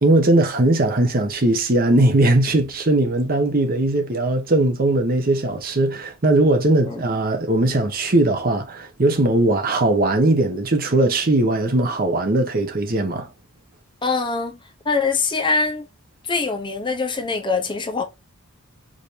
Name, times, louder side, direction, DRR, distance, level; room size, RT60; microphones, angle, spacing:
voice 1, 0.0-13.3, right 2 dB, 40° right, 0.9 m, -19 dB
voice 2, 14.0-14.6 14.8-15.9 16.2-18.0, left 4 dB, 20° left, 0.7 m, -23 dB
5.0 x 2.7 x 3.2 m
head